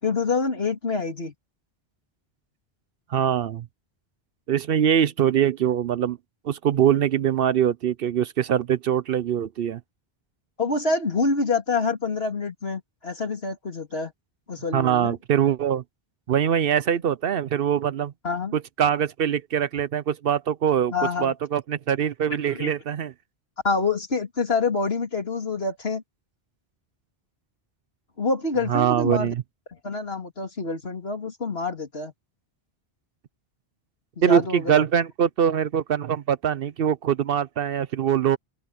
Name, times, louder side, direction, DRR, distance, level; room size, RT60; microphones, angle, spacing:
voice 1, 0.0-1.3 10.6-14.1 14.5-15.1 18.2-18.5 20.9-21.3 22.5-22.7 23.6-26.0 28.2-29.3 29.8-32.1 34.2-34.8, left 4 dB, 65° left, 3.5 m, -26 dB
voice 2, 3.1-3.7 4.5-6.2 6.4-9.8 14.7-15.8 16.3-18.1 18.5-23.1 28.7-29.4 34.2-38.4, right 9 dB, 65° right, 0.8 m, -23 dB
open air
omnidirectional pair, 1.1 m